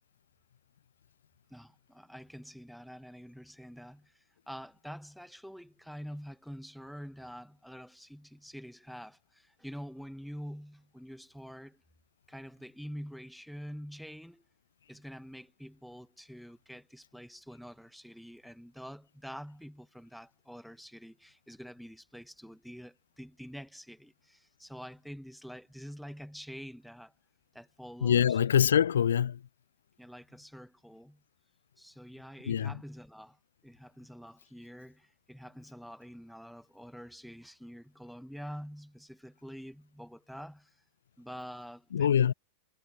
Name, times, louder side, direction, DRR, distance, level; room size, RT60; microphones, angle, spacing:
voice 1, 1.5-11.8 12.3-14.4 14.9-27.1 27.5-28.4 30.0-31.2 31.8-33.4 33.6-40.8 41.2-42.3, equal, ahead, 1.6 m, -46 dB
voice 2, 28.0-29.4 32.4-32.8 41.9-42.3, left 9 dB, 65° left, 0.9 m, -24 dB
figure-of-eight pair, 90°, 0 cm